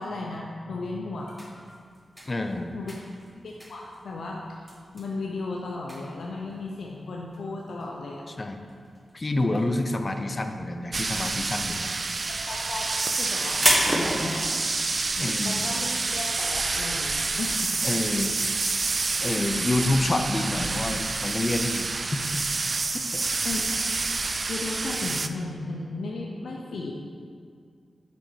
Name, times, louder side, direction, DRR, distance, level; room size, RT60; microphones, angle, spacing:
voice 1, 0.0-1.4 1.7-1.8 2.7-2.9 3.4-4.6 4.9-8.2 12.3-14.5 15.2-17.8 19.8-19.9 23.4-23.6 24.5-27.0, left 2 dB, 85° left, -2 dB, 0.6 m, -35 dB
sound 1, 1.2-9.2 9.4-10.1 10.4-14.3, equal, 10° right, 1.1 m, -30 dB
voice 2, 2.3-2.8 8.4-8.6 9.1-12.0 13.3-13.5 15.2-15.7 17.8-18.4 19.2-22.4 23.1-23.3, left 2 dB, 35° left, 6 dB, 0.6 m, -28 dB
sound 2, 10.9-25.3, right 3 dB, 50° right, 0.3 m, -28 dB
6.9 x 5.0 x 4.6 m, 2.1 s
cardioid pair, 75°, 0 cm